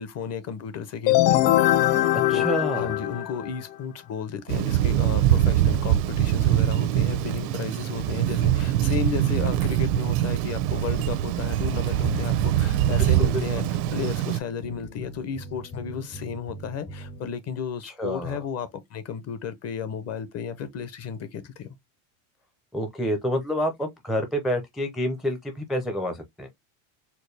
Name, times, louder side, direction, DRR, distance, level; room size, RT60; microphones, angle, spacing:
voice 1, 0.0-1.8 2.3-2.5 2.8-21.8, left 7 dB, 30° left, 0.7 m, -33 dB
sound 1, 1.1-3.7, left 14 dB, 90° left, 0.7 m, -21 dB
voice 2, 2.3-3.0 13.0-13.7 17.8-18.4 22.7-26.5, equal, ahead, 0.5 m, -28 dB
Thunder, 4.5-14.4, right 12 dB, 85° right, 0.8 m, -23 dB
sound 2, 12.0-17.3, left 2 dB, 65° left, 2.3 m, -40 dB
4.5 x 2.2 x 3.2 m
supercardioid pair, 135°, 48 cm